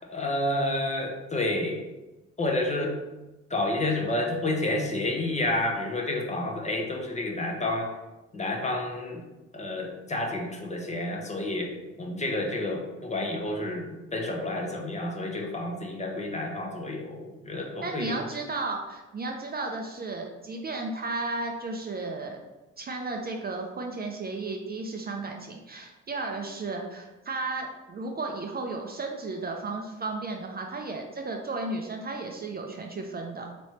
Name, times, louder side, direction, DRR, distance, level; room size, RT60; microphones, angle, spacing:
voice 1, 0.1-1.9 2.4-3.0 3.5-8.0 8.3-9.2 9.5-18.2, left 1 dB, 25° left, 1 dB, 0.7 m, -30 dB
voice 2, 17.8-22.4 22.8-33.5, right 3 dB, 30° right, 2 dB, 0.5 m, -34 dB
3.2 x 3.0 x 4.2 m, 1.1 s
cardioid pair, 90°, 30 cm